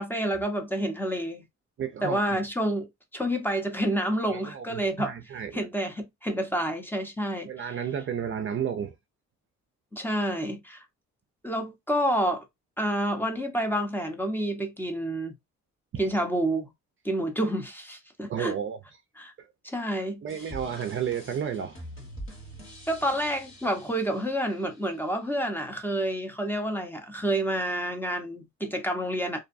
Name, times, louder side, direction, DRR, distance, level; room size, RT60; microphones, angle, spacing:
voice 1, 0.0-1.4 2.0-5.1 5.5-7.7 9.9-10.8 11.4-12.4 12.8-15.3 16.0-16.7 17.0-18.6 19.2-19.3 19.6-20.2 22.9-29.4, right 1 dB, 5° left, 0.6 m, -29 dB
voice 2, 1.8-2.4 4.3-5.6 7.5-8.9 15.9-16.0 18.3-18.8 19.4-19.5 20.2-21.8, right 8 dB, 45° right, 0.4 m, -32 dB
sound 1, 20.3-25.2, equal, 40° left, 1.4 m, -45 dB
2.6 x 2.1 x 2.5 m
cardioid pair, 90°, 30 cm